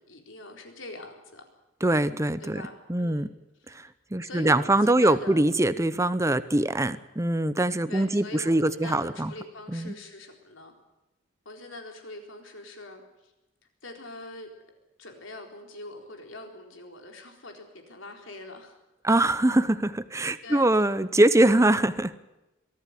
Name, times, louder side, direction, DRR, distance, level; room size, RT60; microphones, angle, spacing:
voice 1, 0.0-1.5 2.4-3.3 4.2-5.5 7.9-10.7 11.5-13.3 13.8-14.5 15.0-18.8 20.4-20.8, left 2 dB, 70° left, 3 dB, 4.1 m, -43 dB
voice 2, 1.8-2.6 2.9-3.3 3.7-9.3 9.7-9.9 19.0-22.2, right 1 dB, 15° right, 13 dB, 0.7 m, -23 dB
23.0 x 13.5 x 9.9 m, 1.0 s
head